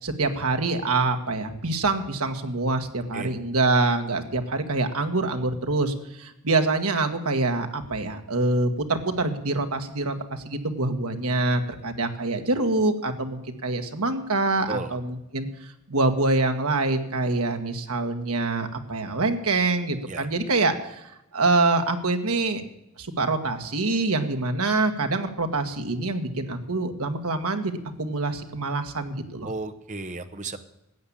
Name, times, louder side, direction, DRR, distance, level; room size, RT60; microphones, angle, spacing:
voice 1, 0.0-15.5 15.9-22.6 23.0-29.5, right 2 dB, 80° right, 6 dB, 1.6 m, -25 dB
voice 2, 29.4-30.6, right 3 dB, 35° right, 8 dB, 1.0 m, -34 dB
13.5 x 8.7 x 8.5 m, 0.88 s
head